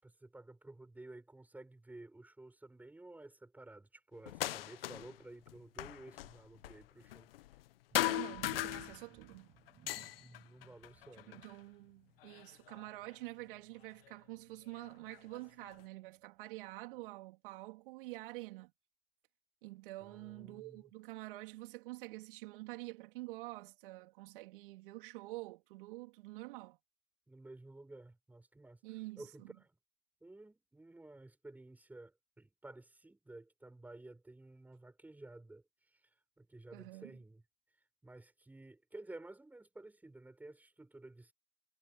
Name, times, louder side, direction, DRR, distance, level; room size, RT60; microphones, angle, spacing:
voice 1, 0.0-7.3 10.2-11.4 20.0-20.9 27.3-29.8 30.2-37.4 38.0-41.3, right 2 dB, 5° right, 7.6 m, -54 dB
sound 1, 4.2-5.2 5.5-7.7 7.9-9.3 9.7-11.6 12.2-13.1 14.1-14.2 14.8-15.8, left 15 dB, 70° left, 1.2 m, -39 dB
sound 2, 7.9-17.1, right 12 dB, 30° right, 7.0 m, -63 dB
voice 2, 8.0-9.5 11.3-18.7 19.6-26.8 28.8-29.2 36.7-37.1, right 20 dB, 60° right, 3.4 m, -47 dB
hypercardioid pair, 135°, 30 cm